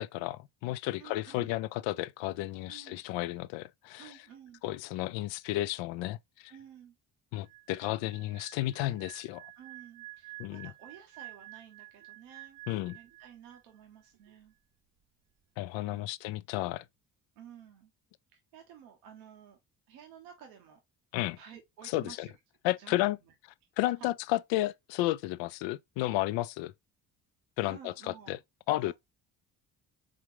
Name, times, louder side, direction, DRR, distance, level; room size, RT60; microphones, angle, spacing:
voice 1, 0.0-4.1 4.6-6.5 7.3-9.5 10.4-10.7 12.7-13.0 15.6-16.8 21.1-21.4 21.9-22.3 22.6-23.2 23.8-26.7 27.6-28.4 28.7-28.9, left 16 dB, 80° left, 0.5 m, -32 dB
voice 2, 1.0-1.6 2.7-3.0 4.0-4.6 6.5-7.0 9.6-12.6 12.9-14.5 15.9-16.1 17.4-17.9 18.3-19.6 19.9-20.8 21.4-22.4 22.8-23.3 24.0-24.1 27.7-28.4 28.7-28.9, right 8 dB, 90° right, 1.0 m, -52 dB
sound 1, 7.4-13.8 14.1-14.3, right 20 dB, 50° right, 0.7 m, -50 dB
4.3 x 3.7 x 3.0 m
supercardioid pair, 60°, 45 cm